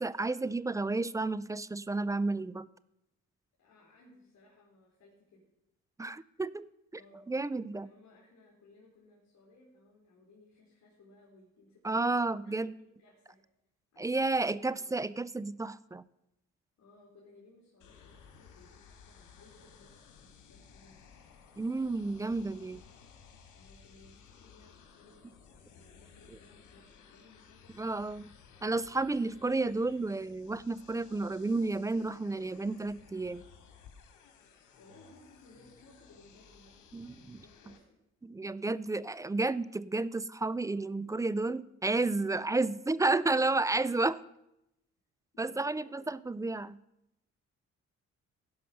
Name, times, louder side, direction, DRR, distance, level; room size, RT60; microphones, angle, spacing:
voice 1, 0.0-2.7 6.0-6.7 7.3-7.9 11.8-12.7 14.0-16.0 21.6-22.8 27.8-28.3 28.6-33.4 36.9-37.4 38.2-44.2 45.4-46.8, right 3 dB, 10° right, 18 dB, 0.3 m, -31 dB
voice 2, 3.6-5.4 6.9-7.3 7.7-13.4 13.9-14.9 16.8-21.1 22.0-23.0 23.5-25.2 25.7-28.1 34.8-38.0 45.3-46.1, left 2 dB, 60° left, -4 dB, 3.4 m, -60 dB
sound 1, 17.8-37.8, left 6 dB, 85° left, 2.1 m, -58 dB
16.0 x 5.7 x 6.5 m, 0.85 s
cardioid pair, 90°, 30 cm